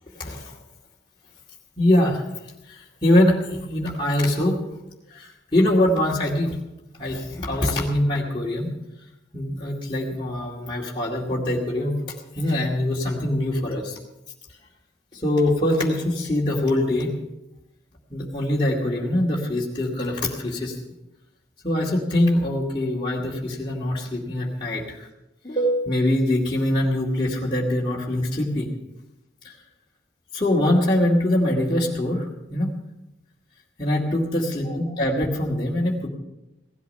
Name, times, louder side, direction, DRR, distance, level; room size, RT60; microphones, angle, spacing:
voice 1, 0.2-0.5 1.8-2.2 2.7-4.6 5.1-6.6 7.0-8.7 9.3-12.0 12.4-14.0 15.1-17.1 18.1-20.8 21.6-24.8 25.4-28.7 29.4-29.5 30.3-32.7 33.8-36.1, left 1 dB, 25° left, -5 dB, 2.3 m, -23 dB
17.5 x 13.0 x 5.5 m, 0.95 s
head